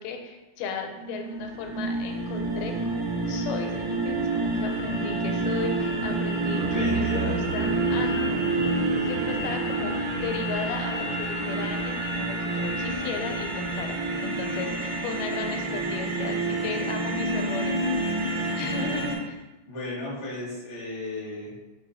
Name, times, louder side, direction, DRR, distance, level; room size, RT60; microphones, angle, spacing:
voice 1, 0.0-8.4 8.9-14.0 14.2-17.8 18.6-19.4, left 5 dB, 90° left, 4 dB, 2.2 m, -35 dB
sound 1, 1.0-19.2, right 2 dB, 70° right, 2.0 m, -28 dB
voice 2, 6.5-7.3 18.6-18.7 19.7-21.5, left 1 dB, 50° left, -7 dB, 0.8 m, -35 dB
5.2 x 2.8 x 3.4 m, 1.1 s
omnidirectional pair, 3.7 m